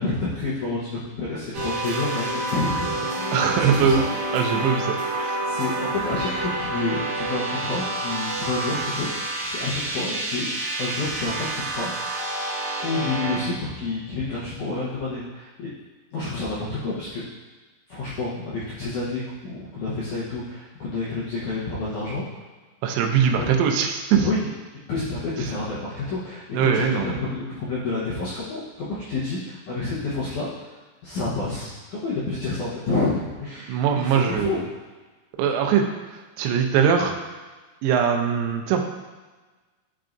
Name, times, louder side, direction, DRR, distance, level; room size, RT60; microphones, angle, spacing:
voice 1, 0.0-4.0 4.4-4.8 5.4-9.1 9.4-10.5 10.8-12.2 12.8-15.7 16.1-17.2 17.9-22.2 23.4-23.5 24.1-24.5 24.9-30.5 31.0-34.6, left 3 dB, 80° left, -9 dB, 1.8 m, -29 dB
sound 1, 1.5-13.4, right 2 dB, 55° right, 2.2 m, -28 dB
voice 2, 3.3-4.1 4.3-5.4 22.8-24.3 25.4-25.5 26.5-27.2 33.7-34.6 35.4-35.9 36.4-37.1 37.8-38.8, right 7 dB, 85° right, 3 dB, 2.8 m, -21 dB
11.0 x 4.6 x 2.6 m, 1.3 s
omnidirectional pair, 4.9 m